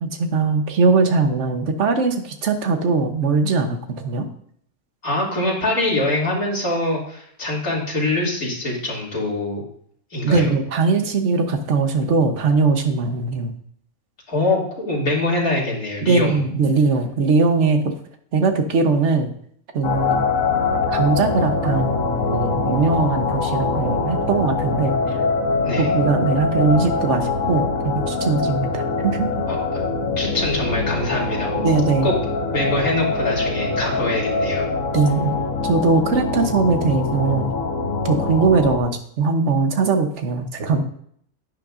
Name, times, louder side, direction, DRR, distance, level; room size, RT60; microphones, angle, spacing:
voice 1, 0.0-4.3 10.2-13.6 16.0-17.9 18.3-19.3 19.7-20.2 20.9-25.2 25.8-29.3 31.6-32.1 34.9-35.3 35.6-37.5 38.0-40.8, right 4 dB, 60° right, 6 dB, 1.3 m, -20 dB
voice 2, 5.0-9.6 10.1-10.5 14.3-16.4 25.6-25.9 29.5-29.6 30.2-31.7 32.0-32.1 32.5-34.7, left 2 dB, 85° left, -5 dB, 3.4 m, -23 dB
sound 1, 19.8-38.8, left 4 dB, 70° left, 1.4 m, -23 dB
11.0 x 9.1 x 2.6 m, 0.65 s
omnidirectional pair, 1.5 m